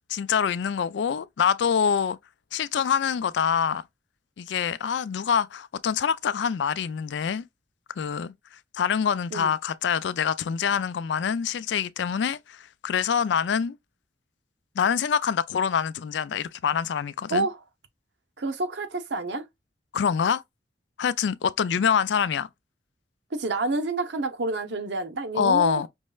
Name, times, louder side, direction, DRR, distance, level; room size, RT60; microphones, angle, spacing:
voice 1, 0.1-2.2 2.5-3.8 4.4-7.5 8.0-8.3 8.7-13.8 14.8-17.5 19.9-20.4 21.0-22.5 25.3-25.9, left 7 dB, 70° left, 0.4 m, -25 dB
voice 2, 17.3-17.6 18.4-19.5 23.3-25.9, right 2 dB, 70° right, 0.8 m, -28 dB
5.3 x 3.1 x 2.3 m
head